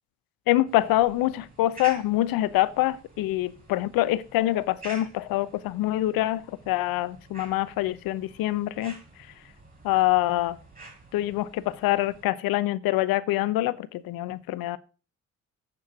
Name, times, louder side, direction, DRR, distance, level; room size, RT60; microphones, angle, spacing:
voice 1, 0.5-9.0 9.8-10.6 11.1-14.8, left 15 dB, 65° left, 0.8 m, -25 dB
sound 1, 0.7-12.2, right 3 dB, 20° right, 5.4 m, -49 dB
7.9 x 7.1 x 5.9 m
hypercardioid pair, 50°, 37 cm